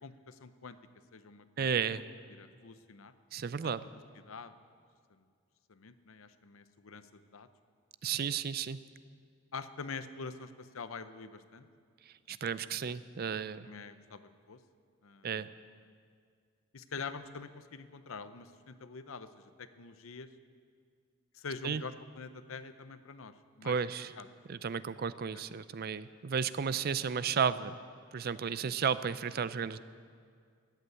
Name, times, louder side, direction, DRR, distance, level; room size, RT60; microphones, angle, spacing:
voice 1, 0.0-0.8 1.1-1.7 2.3-3.1 3.6-3.7 4.3-4.5 5.1-5.2 5.7-7.5 9.5-11.7 13.6-14.6 15.0-15.3 16.7-20.3 21.3-23.8 24.2-24.3 25.3-25.4, left 4 dB, 85° left, 12 dB, 0.7 m, -45 dB
voice 2, 1.6-2.1 3.3-3.8 8.0-8.8 12.1-13.7 15.2-15.5 21.6-21.8 23.6-24.1 24.5-27.8 28.1-29.8, right 7 dB, 50° right, 15 dB, 0.4 m, -33 dB
14.5 x 8.3 x 9.3 m, 2.1 s
head